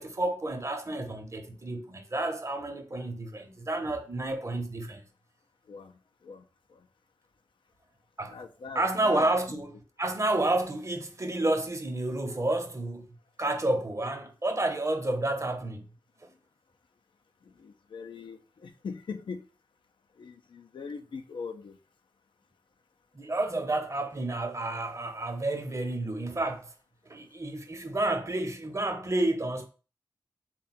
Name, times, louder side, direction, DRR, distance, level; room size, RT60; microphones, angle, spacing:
voice 1, 0.0-5.0 8.2-8.4 8.7-13.1 13.4-15.8 23.1-26.7 27.1-29.7, right 2 dB, 35° right, 0.8 m, -30 dB
voice 2, 8.3-9.3 17.6-19.5 20.2-21.8, left 5 dB, 80° left, 0.5 m, -41 dB
3.7 x 2.3 x 4.2 m
cardioid pair, 40°, 8 cm